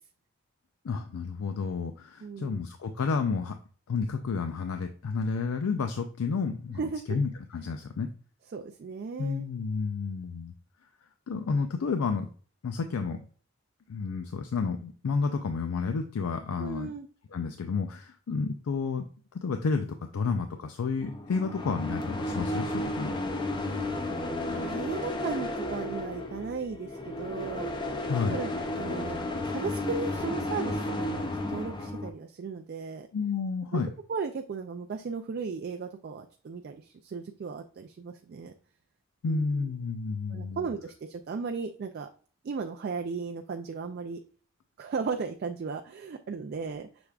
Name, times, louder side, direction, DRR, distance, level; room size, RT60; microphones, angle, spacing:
voice 1, 0.8-3.6 3.9-6.8 7.1-8.1 9.2-10.5 11.3-12.3 12.6-13.2 13.9-16.9 17.3-19.0 19.3-23.1 28.1-28.4 33.1-33.9 39.2-40.7, left 5 dB, 90° left, 7 dB, 0.4 m, -31 dB
voice 2, 2.2-2.6 6.8-7.2 8.5-9.4 16.6-17.1 24.4-27.7 28.3-28.5 28.7-33.1 34.1-38.5 39.2-39.7 40.3-42.1 42.4-44.2 44.8-46.9, right 5 dB, 50° right, 5 dB, 0.3 m, -36 dB
sound 1, 21.0-32.1, left 1 dB, 20° left, 0.5 m, -33 dB
6.0 x 3.4 x 2.3 m, 0.42 s
head